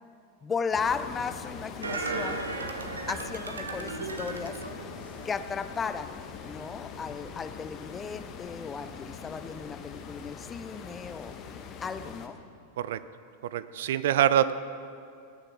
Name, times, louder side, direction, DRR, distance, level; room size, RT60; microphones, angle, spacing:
voice 1, 0.4-2.5 3.1-4.6 5.2-6.2 6.4-11.4 11.8-12.4, left 5 dB, 20° left, 11 dB, 0.6 m, -35 dB
sound 1, 0.7-12.3, left 6 dB, 35° left, 1.2 m, -43 dB
sound 2, 1.8-5.6 6.0-6.1, right 3 dB, 75° right, 0.9 m, -36 dB
voice 2, 13.5-14.5, right 10 dB, 55° right, 14 dB, 0.5 m, -24 dB
18.5 x 6.8 x 5.9 m, 2.5 s
figure-of-eight pair, 90°, 0 cm